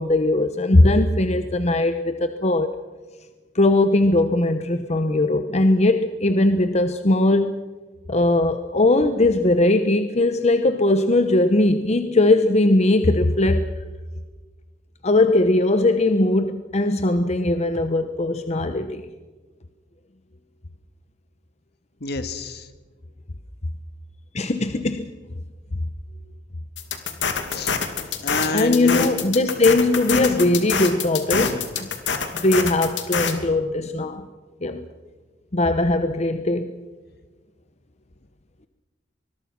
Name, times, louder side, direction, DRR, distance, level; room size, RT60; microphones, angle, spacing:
voice 1, 0.0-2.7 3.5-7.5 8.1-13.7 15.0-19.0 24.3-25.1 28.5-31.9 32.4-34.3 34.6-34.8 35.5-36.8, left 2 dB, 40° left, 9 dB, 0.9 m, -19 dB
voice 2, 22.0-22.7 27.5-27.7 28.2-29.1 30.1-30.3, left 2 dB, 60° left, 9 dB, 1.8 m, -28 dB
sound 1, 26.8-33.3, left 6 dB, 85° left, 2.4 m, -25 dB
24.0 x 21.5 x 6.1 m, 1.3 s
head